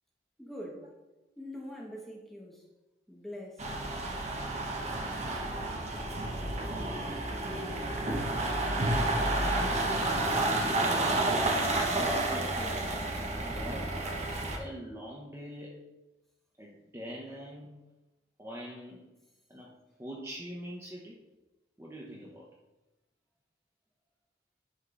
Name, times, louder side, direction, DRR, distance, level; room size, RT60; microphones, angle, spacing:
voice 1, 0.4-0.9 1.4-2.6 3.1-3.8, equal, ahead, -3 dB, 1.2 m, -43 dB
sound 1, 3.6-14.6, right 2 dB, 40° right, 1.0 m, -30 dB
voice 2, 7.3-7.8 8.8-13.0 13.3-14.0 14.6-15.9 16.6-17.7 18.4-19.1 19.5-19.7 20.0-21.2 21.8-22.5, equal, 15° right, -4 dB, 0.9 m, -44 dB
11.0 x 5.1 x 2.6 m, 1.0 s
head